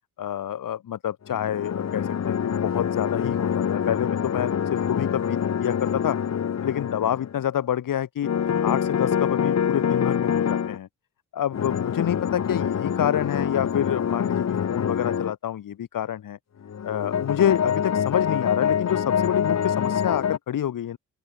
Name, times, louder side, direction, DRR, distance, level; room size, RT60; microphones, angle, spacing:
voice 1, 0.2-6.2 6.6-8.3 8.6-10.9 11.3-16.4 16.8-21.0, left 10 dB, 80° left, 6.8 m, -28 dB
sound 1, 1.3-7.4 8.2-10.8 11.5-15.3 16.6-20.4, left 8 dB, 55° left, 6.6 m, -25 dB
open air
wide cardioid pair, 165°, 32 cm